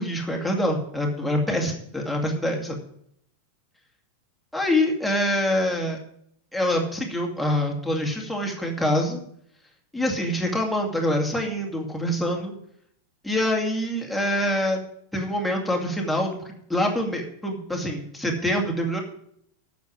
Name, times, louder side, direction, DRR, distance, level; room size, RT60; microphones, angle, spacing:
voice 1, 0.0-2.8 4.5-6.0 6.5-9.2 9.9-12.5 13.2-14.8 15.1-16.4 16.7-19.0, left 1 dB, ahead, 0 dB, 2.4 m, -25 dB
9.3 x 6.8 x 8.8 m, 0.68 s
figure-of-eight pair, 90°, 0 cm